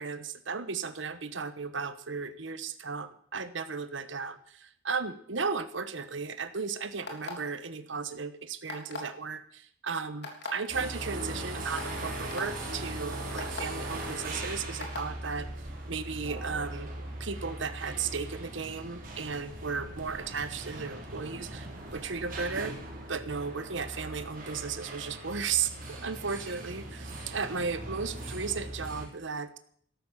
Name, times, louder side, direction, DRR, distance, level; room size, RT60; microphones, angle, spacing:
voice 1, 0.0-15.5 15.9-16.9 17.2-22.8 23.1-29.6, right 5 dB, 65° right, 12 dB, 1.0 m, -35 dB
sound 1, 7.0-7.5 8.7-9.1 10.2-10.5 11.2-11.3 11.8-11.9 12.3-12.4 13.4-13.6 14.8-15.1, left 4 dB, 55° left, 3.5 m, -38 dB
sound 2, 10.7-29.1, right 1 dB, 45° right, 4.2 m, -39 dB
13.0 x 13.0 x 7.3 m, 0.63 s
head